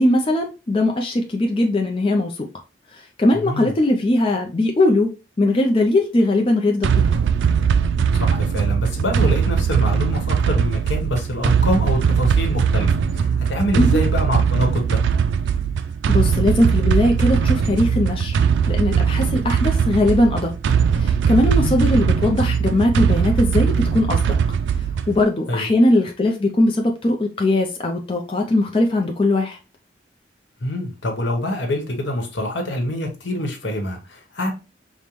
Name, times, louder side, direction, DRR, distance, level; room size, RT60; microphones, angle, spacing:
voice 1, 0.0-2.3 2.9-5.1 5.4-7.1 13.7-14.0 16.1-18.4 18.7-20.5 20.9-24.2 25.1-29.6, left 1 dB, 30° left, 0.4 m, -19 dB
voice 2, 3.3-3.7 8.1-15.0 21.5-21.8 25.5-25.7 30.6-34.5, left 1 dB, 80° left, 1.0 m, -25 dB
sound 1, 6.8-25.2, right 7 dB, 80° right, 0.3 m, -20 dB
5.1 x 2.1 x 2.9 m
head